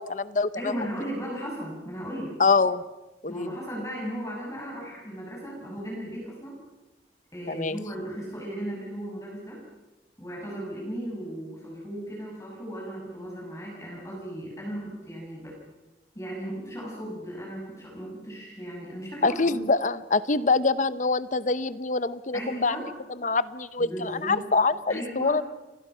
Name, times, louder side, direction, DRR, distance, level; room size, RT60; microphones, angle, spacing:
voice 1, 0.0-0.7 2.4-2.8 3.2-3.5 7.5-7.8 19.2-22.8 23.2-25.4, left 3 dB, 45° left, 15 dB, 0.8 m, -25 dB
voice 2, 0.6-2.3 3.3-6.6 7.3-9.6 10.2-15.6 16.1-19.7 22.3-22.9 23.8-24.5 24.9-25.4, equal, 15° left, -2 dB, 6.5 m, -36 dB
29.0 x 22.0 x 5.7 m, 1.1 s
head